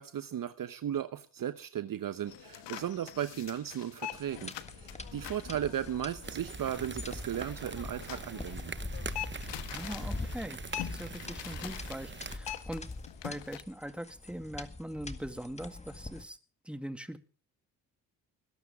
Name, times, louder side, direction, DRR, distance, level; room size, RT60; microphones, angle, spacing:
voice 1, 0.0-8.8, right 10 dB, 45° right, 1.0 m, -36 dB
sound 1, 2.3-13.6, left 13 dB, 65° left, 1.4 m, -45 dB
sound 2, 4.1-16.2, left 2 dB, 15° left, 1.9 m, -43 dB
sound 3, 6.2-12.4, right 5 dB, 25° right, 1.1 m, -44 dB
voice 2, 9.7-12.9 13.2-16.4 16.6-17.2, right 1 dB, ahead, 2.1 m, -41 dB
21.0 x 12.0 x 3.6 m
hypercardioid pair, 50°, 46 cm